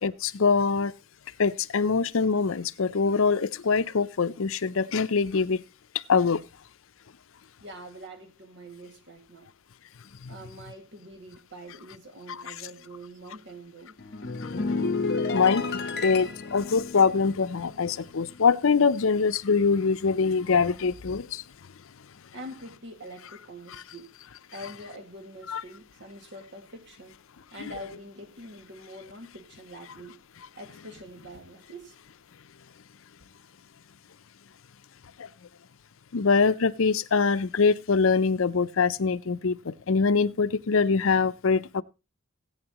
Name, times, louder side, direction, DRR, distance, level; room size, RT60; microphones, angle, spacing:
voice 1, 0.0-0.9 1.4-5.6 6.1-6.4 10.2-10.3 15.3-21.4 25.5-25.6 36.1-41.8, left 5 dB, 70° left, 0.6 m, -24 dB
voice 2, 7.6-9.5 10.3-14.0 22.3-24.1 24.5-27.2 27.5-30.2 30.6-32.0, right 1 dB, 60° right, 2.1 m, -44 dB
sound 1, 14.0-18.6 18.9-19.2, left 4 dB, 55° left, 1.0 m, -31 dB
18.0 x 8.8 x 3.0 m
head